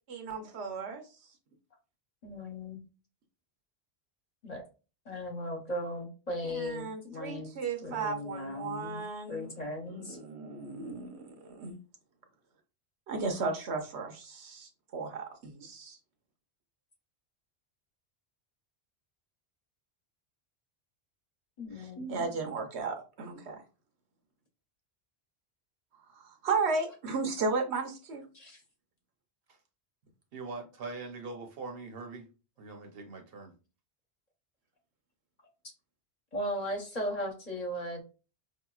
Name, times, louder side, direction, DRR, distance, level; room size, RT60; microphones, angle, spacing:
voice 1, 0.1-1.0 6.4-9.5 9.9-11.7 13.1-16.0 21.7-23.6 26.1-28.3, right 4 dB, 85° right, 1.1 m, -35 dB
voice 2, 2.2-2.8 4.4-4.6 5.1-7.5 7.8-9.0 9.3-10.2 21.6-22.2 28.3-28.6 36.3-38.0, left 1 dB, 40° left, 1.0 m, -37 dB
voice 3, 30.3-32.3 32.6-33.5, right 3 dB, 65° right, 0.9 m, -42 dB
4.9 x 2.8 x 2.3 m
omnidirectional pair, 1.1 m